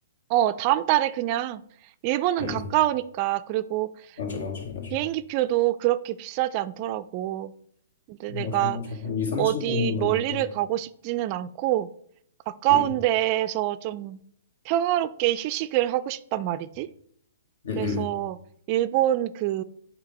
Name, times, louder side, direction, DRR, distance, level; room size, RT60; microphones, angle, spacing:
voice 1, 0.3-1.6 2.0-4.2 4.9-7.5 8.1-8.8 9.4-11.9 12.5-14.2 14.7-16.9 17.8-18.4 18.7-19.6, right 14 dB, 40° right, 14 dB, 0.3 m, -25 dB
voice 2, 4.2-5.0 8.3-10.4 12.7-12.8 17.6-18.1, left 5 dB, 70° left, 1 dB, 2.0 m, -30 dB
8.2 x 2.8 x 5.3 m, 0.67 s
hypercardioid pair, 125°, 0 cm